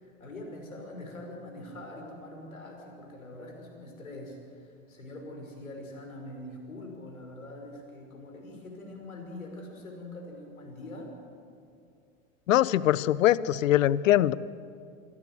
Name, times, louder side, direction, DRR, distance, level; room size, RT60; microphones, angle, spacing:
voice 1, 0.0-11.2, left 1 dB, 85° left, 2 dB, 5.7 m, -43 dB
voice 2, 12.5-14.3, left 13 dB, 70° left, 20 dB, 0.8 m, -22 dB
25.0 x 17.5 x 8.0 m, 2.5 s
hypercardioid pair, 90°, 41 cm